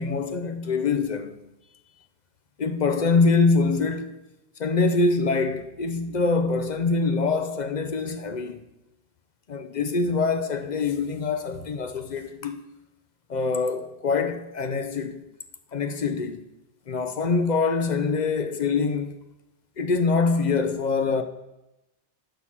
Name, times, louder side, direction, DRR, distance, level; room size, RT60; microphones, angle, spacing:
voice 1, 0.0-1.4 2.6-4.2 4.6-8.6 9.5-12.6 13.3-15.2 15.7-16.4 16.9-19.2 19.8-21.2, left 4 dB, 50° left, 0.7 m, -24 dB
9.9 x 5.7 x 6.0 m
omnidirectional pair, 1.1 m